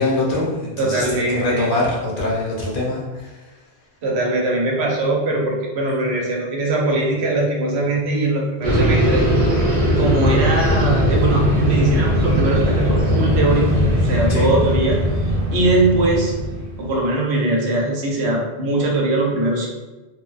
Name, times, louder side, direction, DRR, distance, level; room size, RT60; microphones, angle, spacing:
voice 1, 0.0-3.0 14.3-14.5, left 2 dB, 55° left, -4 dB, 0.8 m, -22 dB
voice 2, 0.8-1.7 4.0-9.3 9.9-13.8 14.0-15.0 15.5-16.3 16.8-19.7, right 2 dB, 80° right, -2 dB, 0.9 m, -21 dB
sound 1, 8.6-16.9, equal, 40° right, 0.6 m, -19 dB
3.0 x 2.2 x 2.4 m, 1.2 s
omnidirectional pair, 1.1 m